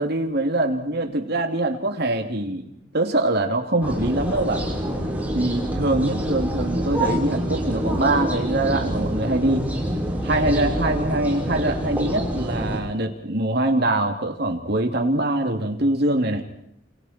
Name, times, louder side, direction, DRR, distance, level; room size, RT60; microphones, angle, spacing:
voice 1, 0.0-2.6 2.9-4.6 5.3-9.7 10.2-16.4, right 2 dB, 60° right, 3 dB, 2.8 m, -23 dB
sound 1, 3.8-12.8, equal, 10° right, 5.8 m, -26 dB
29.0 x 28.0 x 4.5 m, 0.77 s
head